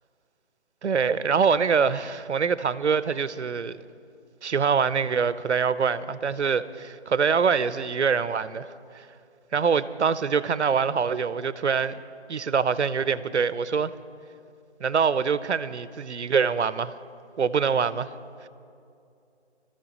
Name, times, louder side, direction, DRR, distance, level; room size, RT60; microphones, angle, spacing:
voice 1, 0.8-3.8 4.4-8.7 8.9-9.1 9.5-12.0 12.3-13.9 14.8-16.9 17.4-18.1 18.4-18.5, right 6 dB, 80° right, 0.7 m, -24 dB
25.0 x 13.5 x 3.0 m
hypercardioid pair, 180°, 34 cm